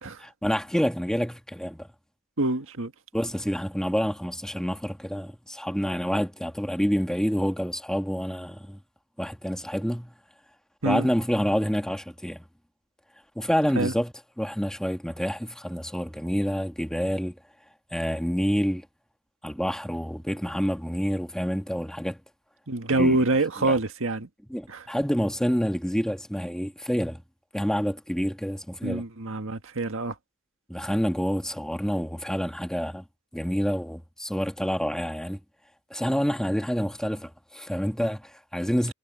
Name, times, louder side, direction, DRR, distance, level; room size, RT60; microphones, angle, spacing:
voice 1, 0.2-1.9 3.1-8.8 9.2-10.1 10.8-12.4 13.4-17.4 17.9-18.9 19.4-22.2 22.9-23.3 23.6-23.8 24.5-27.2 27.5-29.0 30.7-33.0 33.3-35.4 35.9-38.9, equal, 5° left, 1.9 m, -28 dB
voice 2, 2.4-2.9 10.8-11.1 13.8-13.9 22.7-24.3 24.7-24.8 28.8-30.1, right 2 dB, 65° right, 1.8 m, -26 dB
head